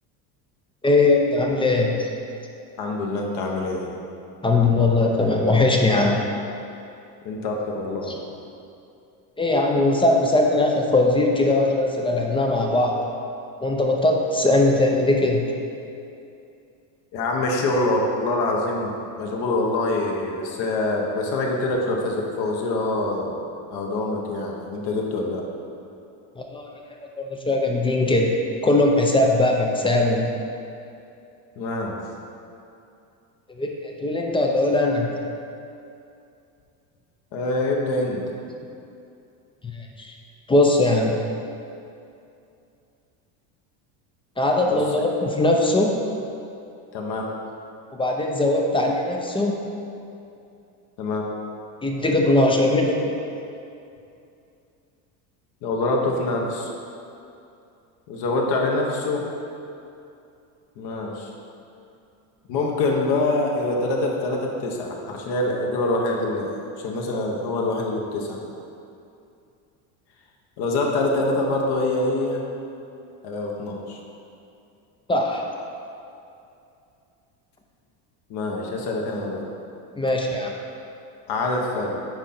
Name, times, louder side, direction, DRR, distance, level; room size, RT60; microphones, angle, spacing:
voice 1, 0.8-2.1 4.4-6.2 8.1-8.2 9.4-13.0 13.6-15.5 26.4-26.7 27.2-28.3 28.6-30.3 33.6-35.1 39.7-40.1 40.5-41.2 44.4-46.0 47.9-49.6 51.8-53.3 75.1-75.5 80.0-80.5, left 2 dB, 10° left, 1 dB, 0.5 m, -20 dB
voice 2, 2.8-3.9 7.2-8.2 17.1-18.9 19.2-23.3 23.7-25.4 31.6-32.0 37.3-38.2 44.7-44.8 46.9-47.3 51.0-51.3 55.6-56.7 58.1-59.3 60.8-61.3 62.5-66.5 66.8-68.4 70.6-72.4 73.2-74.0 78.3-79.4 81.3-82.0, left 2 dB, 60° left, 0 dB, 1.3 m, -25 dB
9.7 x 3.7 x 4.3 m, 2.6 s
supercardioid pair, 120°, 45 cm